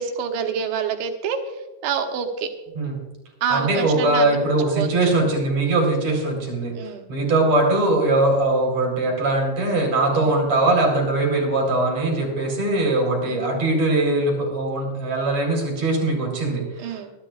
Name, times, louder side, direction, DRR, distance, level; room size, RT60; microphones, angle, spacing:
voice 1, 0.0-1.4 1.8-2.5 3.4-4.4 4.8-5.1 6.8-7.1 10.1-10.3 13.3-13.4 16.8-17.1, right 7 dB, 80° right, 4 dB, 3.3 m, -27 dB
voice 2, 3.5-6.8 7.1-17.0, right 2 dB, 40° right, -1 dB, 4.8 m, -21 dB
25.0 x 11.5 x 2.4 m, 1.1 s
omnidirectional pair, 5.2 m